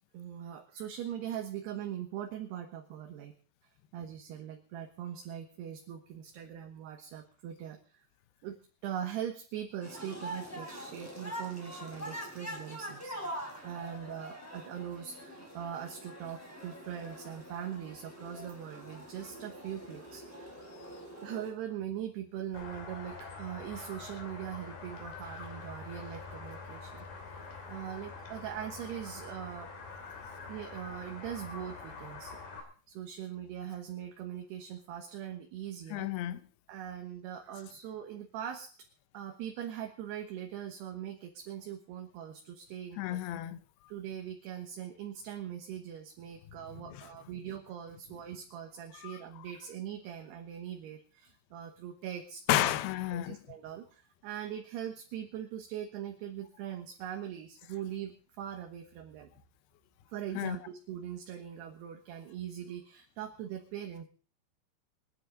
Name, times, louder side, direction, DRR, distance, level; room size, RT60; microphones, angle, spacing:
voice 1, 0.1-3.3 3.9-8.0 8.4-8.6 8.8-13.2 13.6-20.6 21.2-27.1 27.7-29.7 30.5-36.1 36.7-38.7 39.1-43.2 43.9-52.7 53.1-59.3 60.1-64.1, right 10 dB, 70° right, 3.0 m, -41 dB
sound 1, 9.8-21.5, equal, 5° left, 3.4 m, -44 dB
sound 2, 22.5-32.6, left 4 dB, 50° left, 4.4 m, -45 dB
voice 2, 35.9-36.4 43.0-43.6 46.9-47.1 49.0-49.2 52.5-53.4 60.4-60.6, left 14 dB, 80° left, 2.4 m, -31 dB
27.5 x 9.8 x 3.8 m
omnidirectional pair, 5.6 m